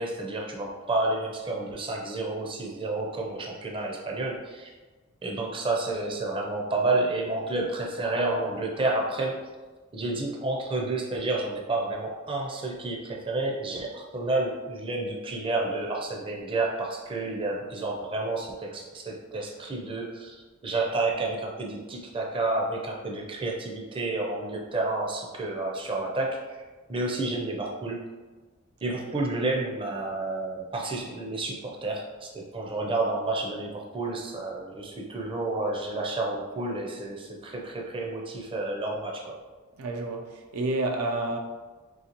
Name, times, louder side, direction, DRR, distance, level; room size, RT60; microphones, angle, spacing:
voice 1, 0.0-4.7 5.2-9.4 9.9-26.4 26.9-28.0 28.8-39.4, right 2 dB, 25° right, 0.5 m, -30 dB
voice 2, 39.8-41.4, right 2 dB, 85° right, 0.5 m, -29 dB
3.9 x 3.2 x 2.9 m
head